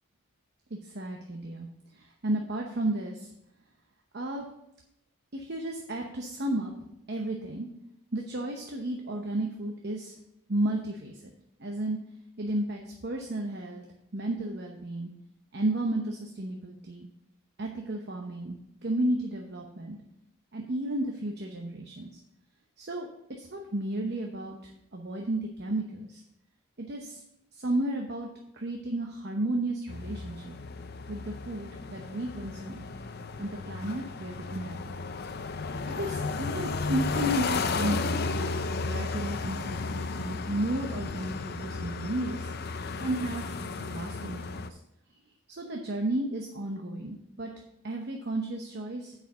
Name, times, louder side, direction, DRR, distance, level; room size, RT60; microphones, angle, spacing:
voice 1, 0.7-1.7 1.9-3.3 4.1-4.5 5.3-6.7 7.1-7.7 8.1-10.1 10.5-11.3 11.6-12.0 12.4-13.9 14.1-15.1 15.5-17.1 17.6-20.0 20.5-22.1 22.8-23.1 23.4-26.2 26.8-27.2 27.5-28.3 28.5-30.6 31.1-32.8 33.4-34.9 35.9-42.5 43.0-44.8 45.6-47.5 47.8-49.1, right 1 dB, 50° right, 2 dB, 0.8 m, -33 dB
sound 1, 29.9-44.7, left 4 dB, 45° left, 0.5 m, -34 dB
9.0 x 5.0 x 6.2 m, 0.82 s
head